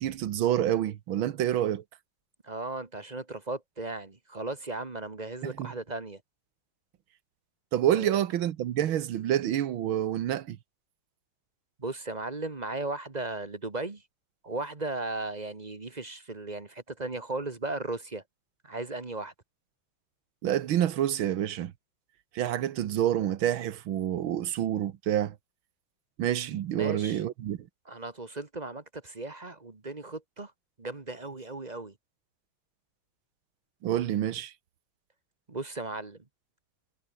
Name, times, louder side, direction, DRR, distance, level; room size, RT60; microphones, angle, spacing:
voice 1, 0.0-1.8 5.4-5.7 7.7-10.6 20.4-21.7 22.3-25.4 26.2-27.6 33.8-34.5, right 11 dB, 90° right, 1.9 m, -28 dB
voice 2, 2.4-6.2 7.9-8.2 11.8-14.0 14.4-18.2 18.6-19.3 26.7-27.2 27.8-30.5 30.8-31.9 35.5-36.2, right 2 dB, 25° right, 1.3 m, -36 dB
omnidirectional pair, 2.1 m